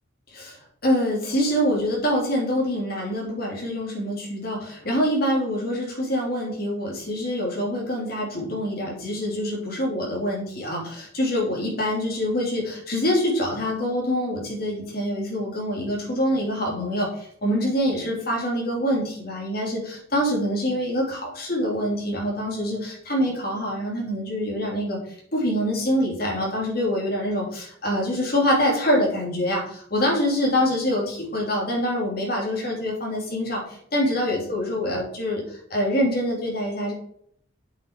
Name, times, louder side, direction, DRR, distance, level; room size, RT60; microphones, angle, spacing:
voice 1, 0.8-25.0 25.3-33.6 33.9-36.9, equal, 45° left, -2 dB, 2.9 m, -25 dB
8.1 x 5.9 x 4.6 m, 0.66 s
head